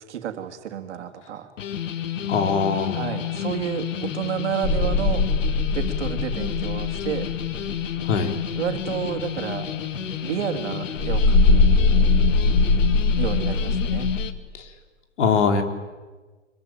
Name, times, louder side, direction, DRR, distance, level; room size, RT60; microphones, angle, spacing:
voice 1, 0.1-1.5 2.9-5.2 5.7-7.3 8.5-9.7 10.2-11.7 13.2-14.1, right 9 dB, 65° right, 7 dB, 3.0 m, -30 dB
sound 1, 1.6-14.3, left 8 dB, 85° left, 2.2 m, -30 dB
voice 2, 2.3-3.1 8.1-8.3 15.2-15.6, left 5 dB, 65° left, 6 dB, 3.8 m, -21 dB
sound 2, 4.6-8.2 11.0-14.3, left 3 dB, 15° left, 5.0 m, -21 dB
24.5 x 24.0 x 9.2 m, 1.3 s
supercardioid pair, 175°, 37 cm